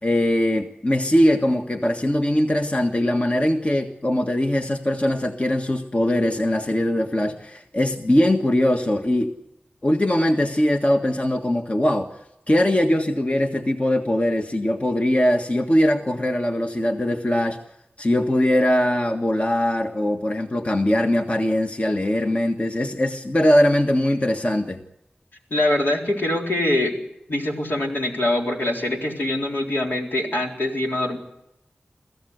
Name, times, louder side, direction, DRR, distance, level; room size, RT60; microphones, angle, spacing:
voice 1, 0.0-9.3 9.8-12.1 12.5-17.6 18.0-24.8, left 1 dB, 40° left, 3 dB, 1.6 m, -21 dB
voice 2, 25.5-27.0 27.3-31.2, left 1 dB, 75° left, -1 dB, 4.0 m, -23 dB
23.0 x 15.0 x 8.0 m, 0.88 s
cardioid pair, 40°, 3 cm